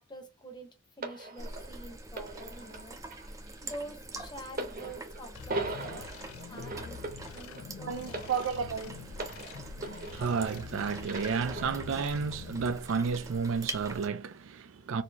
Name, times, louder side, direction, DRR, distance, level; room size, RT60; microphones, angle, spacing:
voice 1, 0.0-3.0 3.6-6.1 6.5-7.0 7.3-8.4, right 1 dB, 20° left, 1.0 m, -46 dB
sound 1, 1.0-10.7 11.0-12.1 12.9-13.0, right 2 dB, 40° right, 0.8 m, -41 dB
sound 2, 1.4-14.1, right 2 dB, 15° right, 0.6 m, -45 dB
sound 3, 5.3-12.7, left 7 dB, 80° left, 0.3 m, -46 dB
voice 2, 7.9-15.0, right 5 dB, 70° right, 0.4 m, -32 dB
4.2 x 2.7 x 2.8 m
head